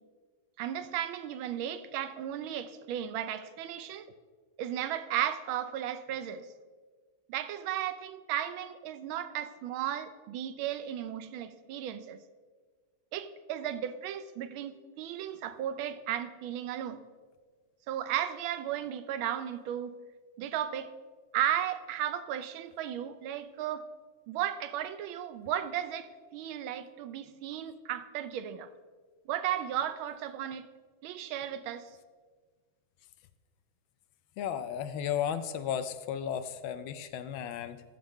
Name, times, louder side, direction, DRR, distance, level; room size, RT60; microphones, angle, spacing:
voice 1, 0.6-4.0 4.6-6.5 7.3-12.2 13.1-17.0 17.9-19.9 20.4-20.9 21.3-23.9 24.3-28.7 29.3-30.7 31.0-31.9, right 10 dB, 75° right, 11 dB, 1.3 m, -35 dB
voice 2, 34.4-37.8, left 9 dB, 75° left, 11 dB, 1.3 m, -34 dB
13.5 x 6.4 x 3.6 m, 1.4 s
omnidirectional pair, 2.4 m